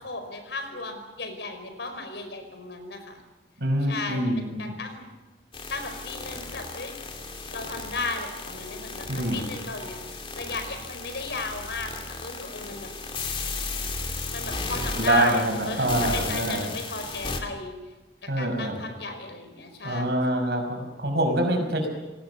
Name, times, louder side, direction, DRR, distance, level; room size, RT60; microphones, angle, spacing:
voice 1, 0.0-3.2 3.9-5.1 5.7-6.9 7.5-10.0 10.3-12.9 14.3-17.9 18.2-20.2, left 3 dB, 75° left, 7 dB, 5.1 m, -35 dB
voice 2, 3.6-4.7 9.1-9.4 15.0-16.7 18.3-18.8 19.8-21.9, right 1 dB, 65° right, 4 dB, 5.8 m, -25 dB
sound 1, 5.5-17.4, left 3 dB, 30° left, 2.6 m, -35 dB
29.5 x 19.0 x 6.9 m, 1.1 s
head